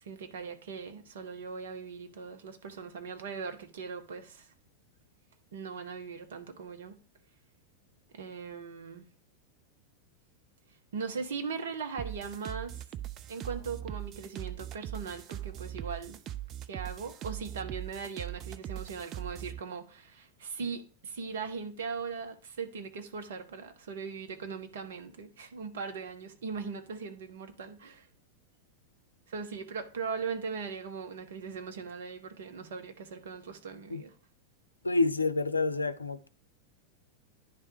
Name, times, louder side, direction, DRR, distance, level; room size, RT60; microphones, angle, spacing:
voice 1, 0.0-4.5 5.5-7.0 8.1-9.0 10.9-12.8 13.3-16.2 16.7-28.1 29.3-34.1, right 5 dB, 60° right, 1.0 m, -39 dB
sound 1, 12.0-19.6, right 12 dB, 35° right, 0.5 m, -40 dB
voice 2, 34.8-36.3, left 3 dB, 80° left, 0.5 m, -28 dB
10.0 x 3.4 x 4.8 m
figure-of-eight pair, 90°, 0 cm